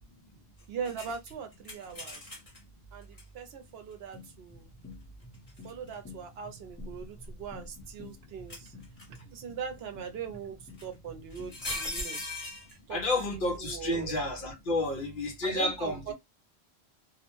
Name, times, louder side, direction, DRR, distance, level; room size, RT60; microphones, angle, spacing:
voice 1, 0.7-2.2 2.9-4.7 5.6-8.7 9.3-12.2 12.9-13.0 13.6-14.1 15.4-16.1, right 7 dB, 70° right, 0.8 m, -40 dB
sound 1, 0.8-2.6 3.2-3.3 5.3-5.9 6.8-7.9 8.5-9.2 10.8-10.9 11.3-12.8, left 2 dB, 35° left, 1.0 m, -39 dB
sound 2, 4.1-11.8, left 3 dB, 10° left, 0.8 m, -51 dB
voice 2, 12.9-16.1, left 2 dB, 60° left, 0.7 m, -30 dB
2.4 x 2.1 x 2.9 m
omnidirectional pair, 1.1 m